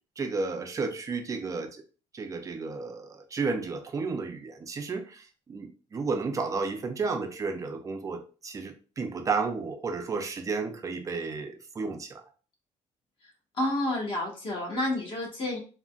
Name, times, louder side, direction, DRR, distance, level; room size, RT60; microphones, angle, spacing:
voice 1, 0.2-1.8 2.1-12.2, right 4 dB, 25° right, 5 dB, 0.5 m, -32 dB
voice 2, 13.6-15.6, left 1 dB, 40° left, -2 dB, 1.2 m, -29 dB
3.7 x 2.1 x 2.3 m, 0.36 s
cardioid pair, 130°, 13 cm